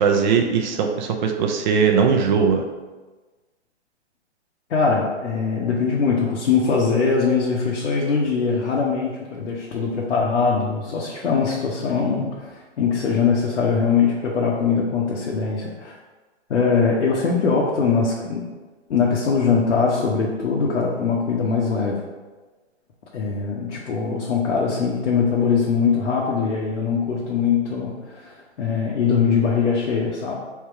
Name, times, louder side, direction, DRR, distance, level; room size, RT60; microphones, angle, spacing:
voice 1, 0.0-2.6, right 6 dB, 40° right, 4 dB, 0.6 m, -19 dB
voice 2, 4.7-15.9 16.5-18.4 18.9-22.0 23.1-30.3, left 5 dB, 75° left, -4 dB, 1.0 m, -22 dB
3.5 x 2.9 x 4.5 m, 1.3 s
hypercardioid pair, 140°, 36 cm